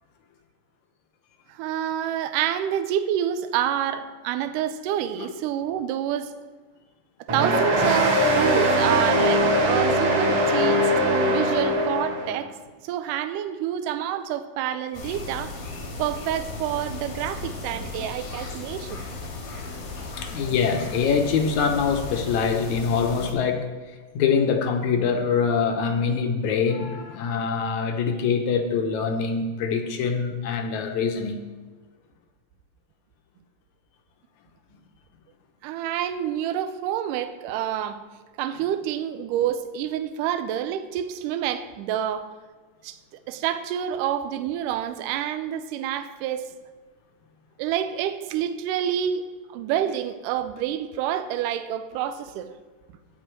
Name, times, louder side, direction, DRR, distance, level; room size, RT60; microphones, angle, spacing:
voice 1, 1.5-6.3 7.3-10.9 11.3-12.5 12.8-15.5 16.0-19.1 35.6-38.0 38.4-42.3 42.8-43.0 43.3-46.6 47.6-49.2 49.5-52.5, right 10 dB, 80° right, 10 dB, 2.0 m, -28 dB
sound 1, 7.3-12.4, equal, 45° right, 2.2 m, -21 dB
sound 2, 14.9-23.3, left 3 dB, 90° left, 3.5 m, -36 dB
voice 2, 20.2-23.7 24.1-31.4, left 6 dB, 75° left, 5 dB, 1.9 m, -24 dB
11.5 x 9.2 x 4.5 m, 1.3 s
omnidirectional pair, 4.1 m